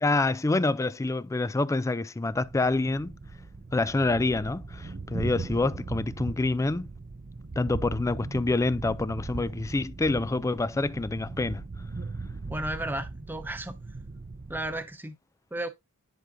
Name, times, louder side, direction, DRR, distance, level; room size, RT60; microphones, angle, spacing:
voice 1, 0.0-3.2 3.7-6.9 7.6-11.6, left 2 dB, 15° left, 0.3 m, -27 dB
Thunder, 2.3-14.9, right 3 dB, 40° right, 0.5 m, -39 dB
voice 2, 12.5-13.8 14.5-15.2 15.5-15.7, right 1 dB, 10° right, 0.9 m, -33 dB
10.5 x 5.0 x 2.6 m
head